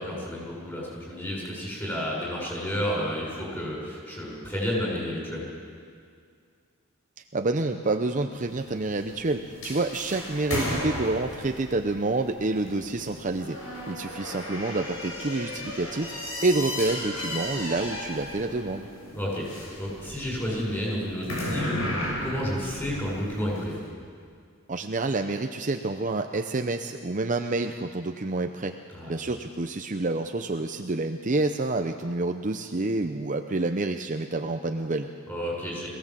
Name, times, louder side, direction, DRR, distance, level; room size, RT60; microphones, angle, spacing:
voice 1, 0.0-5.4 19.1-21.9 22.2-23.8 28.9-29.1 35.3-35.9, equal, 10° left, -4 dB, 6.3 m, -31 dB
voice 2, 7.3-13.6 13.9-16.1 16.4-18.9 24.7-28.7 29.1-35.1, right 2 dB, 35° right, 6 dB, 0.7 m, -28 dB
sound 1, 8.3-23.7, left 1 dB, 75° left, 6.5 m, -35 dB
22.0 x 16.5 x 7.5 m, 2.2 s
head